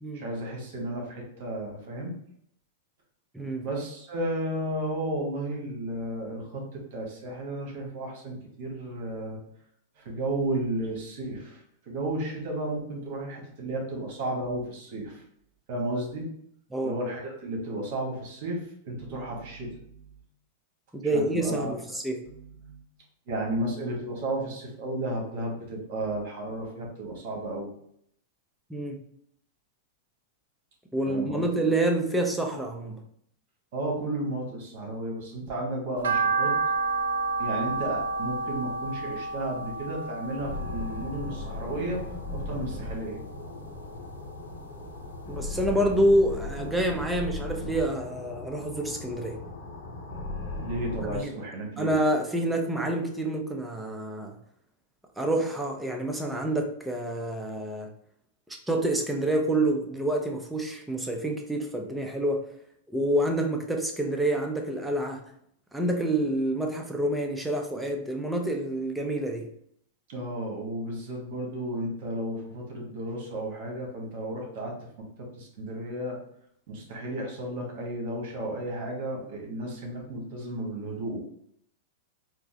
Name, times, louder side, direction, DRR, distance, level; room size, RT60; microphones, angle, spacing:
voice 1, 0.1-2.1 3.6-9.4 10.0-15.2 15.7-16.3 16.8-20.1 21.1-21.7 22.3-22.8 23.3-27.7 31.1-31.4 33.7-36.5 37.4-43.2 50.6-51.9 70.1-74.8 75.4-76.2 76.7-81.2, right 1 dB, 60° right, 0 dB, 1.5 m, -33 dB
voice 2, 3.3-3.7 16.7-17.0 20.9-22.2 28.7-29.0 30.9-33.0 45.3-49.4 51.0-51.3 51.8-54.4 55.2-57.9 58.5-62.5 62.9-65.2 65.7-69.5, right 1 dB, 5° right, 3 dB, 0.6 m, -27 dB
sound 1, 36.0-42.3 42.7-43.9 44.2-45.6 46.0-46.1 46.6-46.7 46.9-47.0, right 4 dB, 85° right, 0.4 m, -30 dB
sound 2, 40.4-51.2, left 2 dB, 65° left, 0.8 m, -37 dB
4.4 x 2.0 x 2.8 m, 0.68 s
hypercardioid pair, 125°, 0 cm